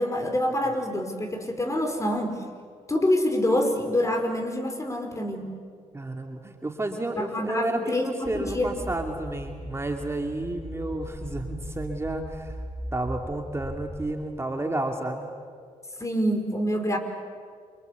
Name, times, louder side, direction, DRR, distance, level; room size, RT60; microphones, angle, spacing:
voice 1, 0.0-2.4 2.9-5.5 7.2-8.7 16.0-17.0, left 1 dB, 25° left, 6 dB, 5.0 m, -26 dB
voice 2, 5.9-12.6 12.9-15.3, right 2 dB, 20° right, 3 dB, 2.6 m, -31 dB
sound 1, 8.2-14.1, equal, 5° left, 6.7 m, -39 dB
29.0 x 24.0 x 8.4 m, 2.1 s
cardioid pair, 65°, 13 cm